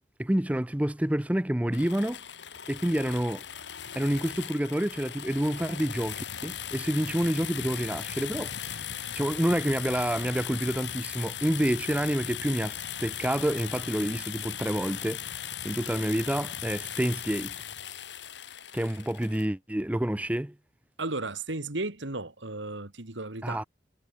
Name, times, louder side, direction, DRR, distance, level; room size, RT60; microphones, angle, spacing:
voice 1, 0.2-2.2 2.7-3.5 4.0-17.5 18.7-20.5 23.4-23.6, right 1 dB, 10° right, 0.6 m, -28 dB
sound 1, 1.7-19.5, left 9 dB, 70° left, 1.8 m, -38 dB
voice 2, 21.0-23.7, right 2 dB, 80° right, 2.7 m, -34 dB
head